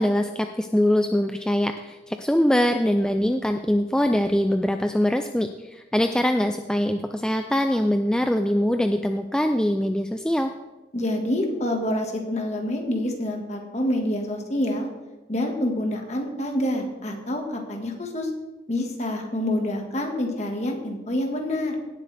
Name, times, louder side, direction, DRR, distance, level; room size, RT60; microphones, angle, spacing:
voice 1, 0.0-10.5, left 1 dB, 5° left, 6 dB, 0.3 m, -23 dB
voice 2, 10.9-14.9 15.3-18.3 18.7-21.7, left 1 dB, 40° left, 2 dB, 1.6 m, -27 dB
17.0 x 7.8 x 3.4 m, 1.1 s
head